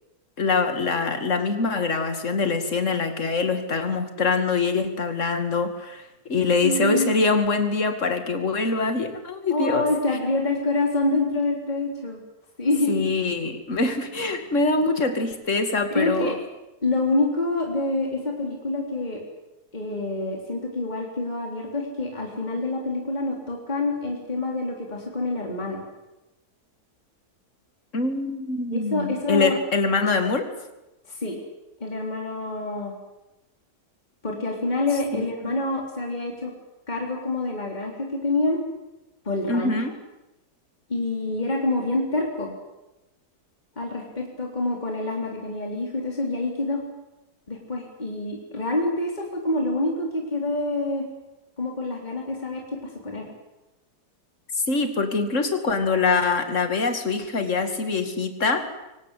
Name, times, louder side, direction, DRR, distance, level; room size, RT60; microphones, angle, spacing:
voice 1, 0.4-9.9 12.9-16.4 27.9-30.5 35.1-35.5 39.5-40.0 54.7-58.7, left 4 dB, 45° left, 7 dB, 2.5 m, -24 dB
voice 2, 6.6-7.3 9.5-12.2 12.6-13.0 15.9-16.3 16.8-19.2 19.7-25.8 28.7-29.6 31.1-31.4 31.8-32.9 34.2-36.5 36.9-38.6 39.3-39.7 40.9-42.6 43.8-46.8 47.5-51.1 51.6-53.3, left 2 dB, 25° left, 0 dB, 3.9 m, -26 dB
24.0 x 18.5 x 8.3 m, 0.97 s
omnidirectional pair, 1.8 m